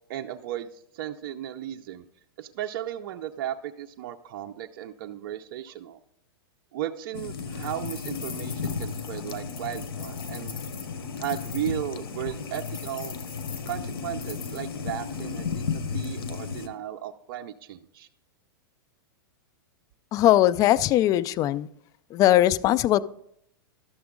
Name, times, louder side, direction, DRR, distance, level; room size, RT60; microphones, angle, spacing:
voice 1, 0.1-2.0 2.4-6.0 6.7-10.6 11.2-13.1 13.7-18.1, right 11 dB, 60° right, 5 dB, 0.5 m, -35 dB
sound 1, 7.1-16.7, left 5 dB, 85° left, 1.0 m, -34 dB
sound 2, 7.6-11.7 12.5-14.6, left 7 dB, 65° left, 1.7 m, -43 dB
voice 2, 20.1-21.7 22.1-23.0, left 13 dB, 30° left, 16 dB, 0.3 m, -20 dB
12.0 x 7.0 x 3.7 m, 0.72 s
hypercardioid pair, 130°, 12 cm